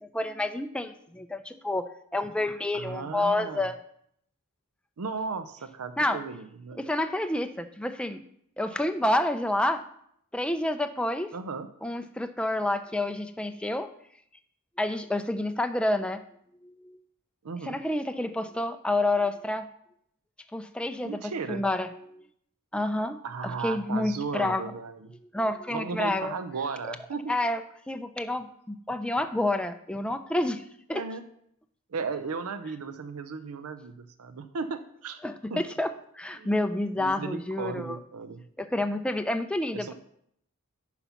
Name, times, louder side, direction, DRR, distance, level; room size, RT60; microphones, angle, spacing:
voice 1, 0.0-3.7 6.0-6.2 6.7-8.2 8.6-9.8 10.3-11.3 11.8-13.9 14.8-16.2 16.6-17.0 17.6-19.7 20.5-22.2 22.7-24.7 25.3-26.3 26.9-27.0 27.3-30.6 30.9-31.0 35.2-38.0 38.6-39.9, left 1 dB, 5° left, 8 dB, 0.3 m, -29 dB
voice 2, 2.7-3.7 5.0-6.9 11.3-11.7 17.4-17.8 21.0-21.6 23.2-25.1 25.7-27.3 30.9-31.2 31.9-35.2 35.5-35.6 36.4-36.5 37.0-38.4 39.7-39.9, right 4 dB, 80° right, 11 dB, 0.5 m, -35 dB
9.9 x 4.1 x 5.6 m, 0.70 s
head